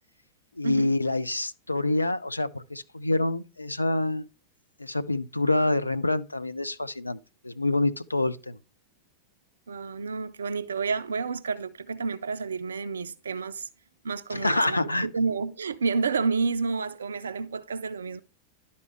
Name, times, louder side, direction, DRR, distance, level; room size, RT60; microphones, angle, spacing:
voice 1, 0.6-4.2 4.8-7.2 7.4-8.6 14.3-15.1, left 2 dB, 85° left, 0.4 m, -26 dB
voice 2, 9.7-13.7 14.0-18.2, right 4 dB, 70° right, 0.3 m, -30 dB
11.0 x 4.2 x 4.6 m
figure-of-eight pair, 90°, 0 cm